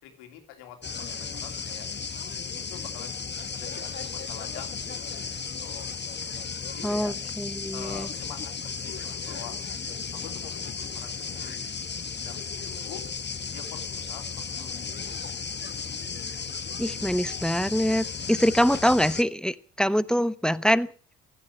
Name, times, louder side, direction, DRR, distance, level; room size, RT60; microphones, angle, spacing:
voice 1, 0.0-1.9 2.4-3.2 3.5-4.9 5.6-6.0 6.7-7.2 7.7-9.5 10.1-11.7 12.2-13.0 13.5-15.2, left 10 dB, 75° left, 3.0 m, -46 dB
sound 1, 0.8-19.2, left 5 dB, 25° left, 1.1 m, -35 dB
voice 2, 6.8-8.1 16.8-20.9, equal, ahead, 0.9 m, -24 dB
15.5 x 11.0 x 7.1 m
hypercardioid pair, 45°, 41 cm